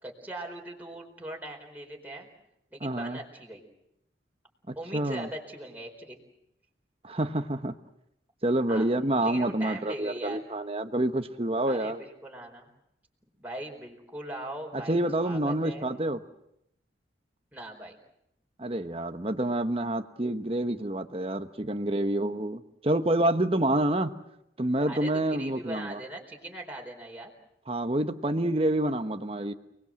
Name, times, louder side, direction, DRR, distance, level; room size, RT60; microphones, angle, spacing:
voice 1, 0.0-2.3 2.7-3.6 4.8-6.2 8.7-8.9 9.2-10.4 11.7-12.7 13.4-15.8 17.5-18.0 24.9-27.3, right 1 dB, 10° right, 0 dB, 4.4 m, -40 dB
voice 2, 2.8-3.2 4.7-5.3 7.0-7.7 8.4-12.0 14.7-16.2 18.6-24.1 24.6-26.0 27.7-29.5, right 1 dB, 30° right, 8 dB, 1.2 m, -28 dB
30.0 x 20.5 x 7.6 m, 0.79 s
head